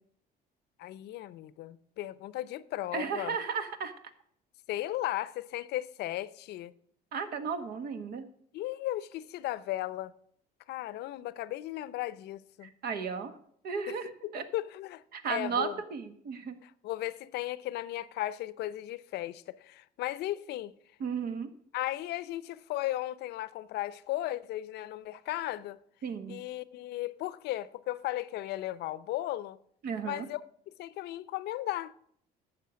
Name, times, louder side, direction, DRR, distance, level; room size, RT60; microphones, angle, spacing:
voice 1, 0.8-3.4 4.7-6.7 8.5-10.1 10.7-12.7 13.9-14.0 14.2-15.8 16.6-20.7 21.7-25.8 26.3-29.6 30.0-30.4 30.8-31.9, left 15 dB, 75° left, 0.6 m, -36 dB
voice 2, 2.9-3.9 7.1-8.2 12.6-13.4 13.6-14.4 15.1-16.6 21.0-21.5 26.0-26.4 29.8-30.2, right 6 dB, 65° right, 1.5 m, -34 dB
12.0 x 7.7 x 6.3 m
cardioid pair, 110°, 17 cm